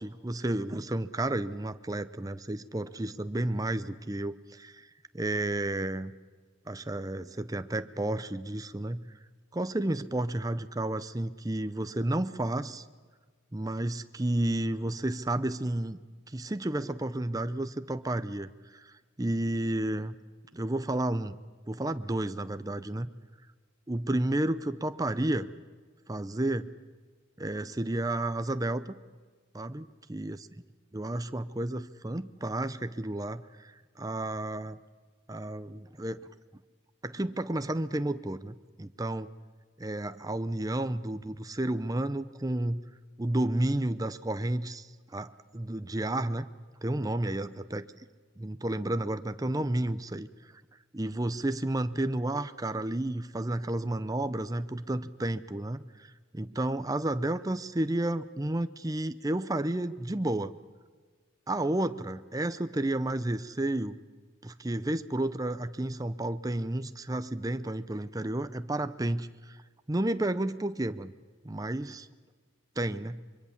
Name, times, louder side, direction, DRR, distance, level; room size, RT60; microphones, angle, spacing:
voice 1, 0.0-4.9 5.1-6.1 6.7-9.0 9.5-12.8 13.5-16.0 16.3-18.5 18.7-20.1 20.5-21.4 21.7-23.1 23.9-25.5 26.1-26.7 27.4-28.9 29.5-30.5 30.9-34.8 35.3-36.2 37.0-39.3 39.8-42.8 43.2-46.5 46.8-47.9 48.4-50.3 50.9-60.5 61.5-64.0 64.4-69.6 69.9-71.1 71.4-72.1 72.8-73.2, right 1 dB, 20° right, 11 dB, 0.6 m, -31 dB
25.0 x 23.5 x 7.2 m, 1.5 s
head